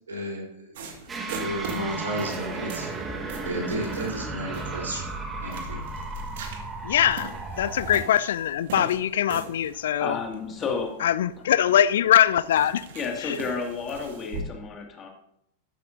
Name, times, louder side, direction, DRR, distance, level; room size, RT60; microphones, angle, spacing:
voice 1, 0.1-0.7 1.4-2.9 3.4-5.1 5.4-5.8, right 1 dB, 70° right, 3.6 m, -32 dB
sound 1, 0.7-14.4, right 4 dB, 55° right, 1.8 m, -42 dB
sound 2, 1.1-8.0, right 3 dB, 20° right, 1.4 m, -34 dB
voice 2, 6.8-10.2 11.0-12.9 13.2-13.4, left 10 dB, 60° left, 0.3 m, -22 dB
voice 3, 10.0-10.9 12.9-15.1, left 5 dB, 25° left, 2.0 m, -31 dB
13.5 x 10.5 x 2.6 m
figure-of-eight pair, 90°, 0 cm